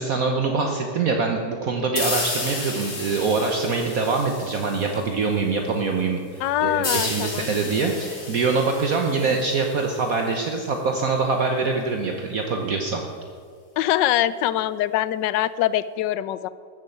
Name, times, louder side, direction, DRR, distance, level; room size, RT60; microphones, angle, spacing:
voice 1, 0.0-13.0, right 4 dB, 55° right, 3 dB, 1.3 m, -24 dB
sound 1, 2.0-5.3 6.8-10.3, left 2 dB, 40° left, 2.4 m, -32 dB
voice 2, 6.4-7.5 13.8-16.5, left 13 dB, 80° left, 16 dB, 1.2 m, -23 dB
13.5 x 7.5 x 8.6 m, 2.1 s
omnidirectional pair, 1.9 m